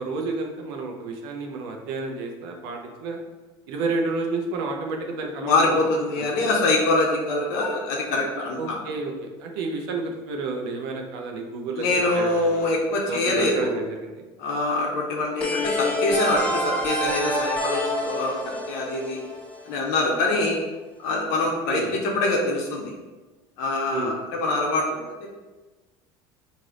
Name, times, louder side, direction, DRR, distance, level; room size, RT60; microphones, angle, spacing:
voice 1, 0.0-3.2 3.7-5.7 6.2-6.3 8.5-12.7 13.1-14.2 21.7-21.9 23.9-24.1, right 3 dB, 75° right, 2 dB, 0.6 m, -30 dB
voice 2, 5.4-8.8 11.8-13.7 14.4-19.2 19.7-20.6 21.0-22.9 23.6-25.0, left 2 dB, 70° left, -1 dB, 0.7 m, -24 dB
sound 1, 15.4-20.0, left 1 dB, 10° left, 0.8 m, -27 dB
3.3 x 2.6 x 3.8 m, 1.2 s
hypercardioid pair, 90°, 13 cm